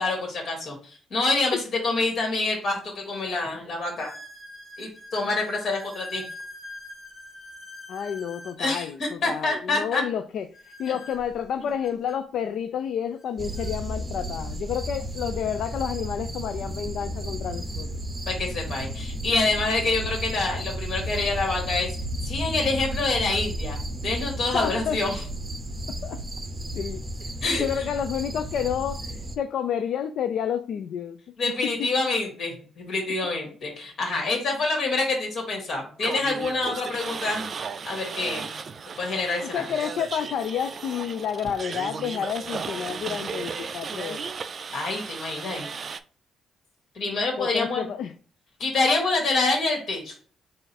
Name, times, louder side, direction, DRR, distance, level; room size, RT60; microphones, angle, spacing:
voice 1, 0.0-4.1 4.8-6.2 8.6-8.9 9.2-10.0 10.9-11.0 18.3-21.9 22.2-23.8 24.0-25.2 27.4-27.9 31.4-37.5 37.9-38.5 39.0-39.6 44.7-45.7 47.0-47.9 48.6-50.1, left 3 dB, 55° left, 1.8 m, -26 dB
sound 1, 3.0-3.1 4.0-8.6 10.5-12.2 13.2-13.3 13.5-13.7 14.5-14.6 16.8-16.9 19.0-19.1 19.8-20.1 20.7-21.6, left 2 dB, 20° left, 1.8 m, -44 dB
voice 2, 7.9-18.0 24.5-25.0 25.9-26.2 26.8-27.3 27.6-31.2 31.8-31.9 39.4-44.3 47.4-48.1, left 8 dB, 70° left, 0.3 m, -30 dB
sound 2, 13.4-29.4, equal, 20° right, 0.7 m, -33 dB
sound 3, 36.0-46.0, right 5 dB, 45° right, 0.3 m, -35 dB
3.9 x 2.5 x 4.1 m
cardioid pair, 90°, 0 cm